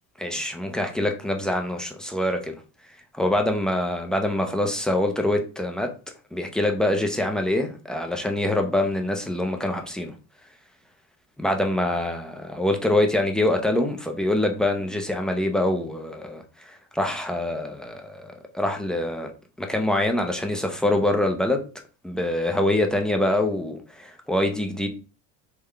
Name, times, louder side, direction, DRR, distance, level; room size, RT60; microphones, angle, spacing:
voice 1, 0.2-2.5 3.1-5.9 6.3-10.1 11.4-19.3 19.6-21.6 22.0-24.9, left 1 dB, ahead, 0.7 m, -25 dB
3.5 x 3.5 x 3.3 m
supercardioid pair, 115°, 40 cm